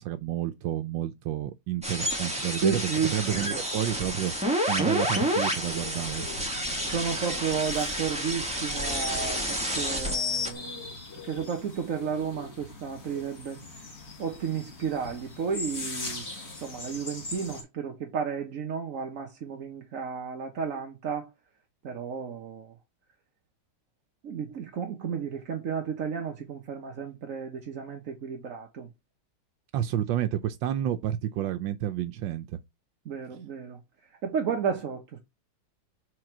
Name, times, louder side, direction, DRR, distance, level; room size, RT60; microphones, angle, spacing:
voice 1, 0.0-2.8 3.1-4.3 4.7-6.3 29.7-32.6, right 11 dB, 80° right, 1.3 m, -30 dB
sound 1, 1.8-10.5, equal, 5° right, 1.7 m, -29 dB
voice 2, 2.6-3.2 6.8-10.9 11.3-13.6 14.2-16.3 16.6-21.3 21.8-22.7 24.2-28.9 33.0-33.8 34.2-35.2, right 6 dB, 50° right, 1.2 m, -32 dB
sound 2, 5.0-17.6, left 3 dB, 35° left, 1.9 m, -41 dB
4.8 x 4.3 x 5.9 m
omnidirectional pair, 2.0 m